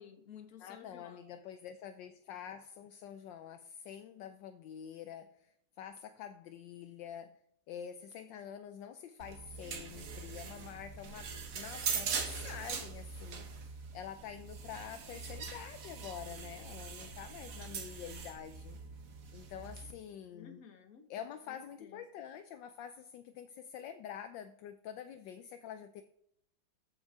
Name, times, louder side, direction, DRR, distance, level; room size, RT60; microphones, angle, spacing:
voice 1, 0.0-1.3 20.3-22.0, left 7 dB, 50° left, 7 dB, 1.6 m, -54 dB
voice 2, 0.6-7.4 7.7-18.8 19.3-20.6 21.1-26.0, left 9 dB, 75° left, 10 dB, 1.2 m, -47 dB
sound 1, 9.2-19.9, right 5 dB, 50° right, 1.3 m, -42 dB
14.0 x 5.3 x 4.7 m, 0.74 s
omnidirectional pair, 2.1 m